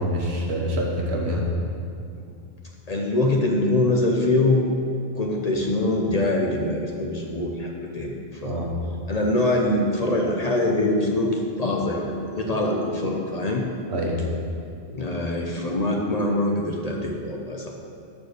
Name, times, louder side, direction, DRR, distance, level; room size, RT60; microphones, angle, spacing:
voice 1, 0.0-1.5 8.4-8.7 13.9-14.2, equal, 75° right, -1 dB, 1.3 m, -26 dB
voice 2, 2.9-4.7 5.1-8.1 8.4-8.7 9.1-13.6 14.9-17.7, left 2 dB, 45° left, 0 dB, 0.6 m, -24 dB
6.9 x 4.4 x 6.3 m, 2.5 s
omnidirectional pair, 1.1 m